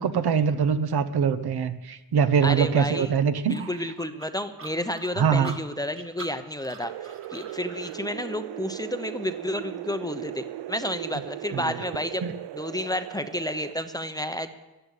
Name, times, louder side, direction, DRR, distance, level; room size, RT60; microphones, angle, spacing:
voice 1, 0.0-3.6 5.2-5.6 11.5-11.6 12.2-12.3, right 7 dB, 65° right, 11 dB, 1.1 m, -23 dB
voice 2, 2.4-3.1 3.5-12.2 12.5-14.5, left 1 dB, 10° left, 9 dB, 0.8 m, -31 dB
sound 1, 3.5-8.0, right 3 dB, 30° right, 2.0 m, -43 dB
sound 2, 6.8-13.7, right 14 dB, 80° right, 0.6 m, -38 dB
14.0 x 11.5 x 8.3 m, 1.1 s
wide cardioid pair, 135°, 41 cm